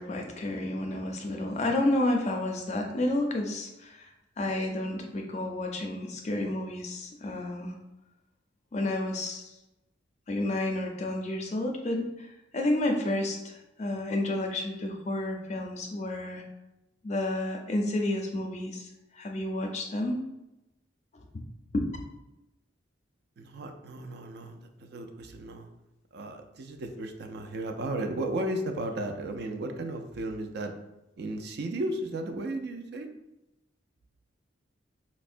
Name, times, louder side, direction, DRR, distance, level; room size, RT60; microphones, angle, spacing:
voice 1, 0.0-4.1 4.4-7.8 8.7-9.5 10.3-12.3 12.5-16.4 17.0-18.9 19.1-20.2 21.7-21.9, left 1 dB, 35° left, 2 dB, 0.4 m, -30 dB
voice 2, 23.4-25.7 26.1-30.7 31.2-33.1, right 1 dB, 55° right, 5 dB, 0.3 m, -34 dB
4.3 x 2.1 x 2.5 m, 0.93 s
head